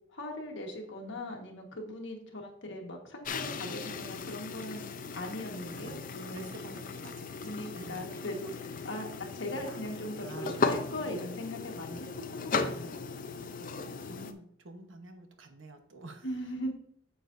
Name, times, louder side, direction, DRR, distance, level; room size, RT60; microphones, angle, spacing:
voice 1, 0.1-4.9 5.1-6.8 7.4-12.5 12.8-12.9 16.2-16.7, left 1 dB, 65° left, 1 dB, 1.5 m, -40 dB
sound 1, 3.2-14.3, left 4 dB, 45° left, 0.6 m, -37 dB
voice 2, 5.7-7.4 7.7-8.2 9.6-10.7 11.0-11.2 14.1-16.3, right 2 dB, 70° right, 5 dB, 1.1 m, -49 dB
9.0 x 7.1 x 2.6 m, 0.67 s
head